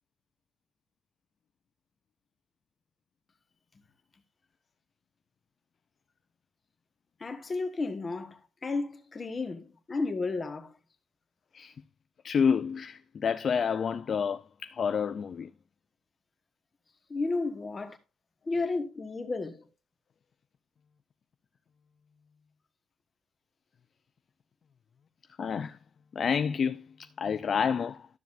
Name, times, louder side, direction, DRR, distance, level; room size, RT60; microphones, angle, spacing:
voice 1, 7.2-10.7 17.1-18.0 18.5-19.7, left 3 dB, 25° left, 1.4 m, -33 dB
voice 2, 12.2-15.5 25.4-25.8 26.1-28.1, left 6 dB, 40° left, 0.4 m, -29 dB
12.5 x 7.1 x 2.6 m
cardioid pair, 150°, 0 cm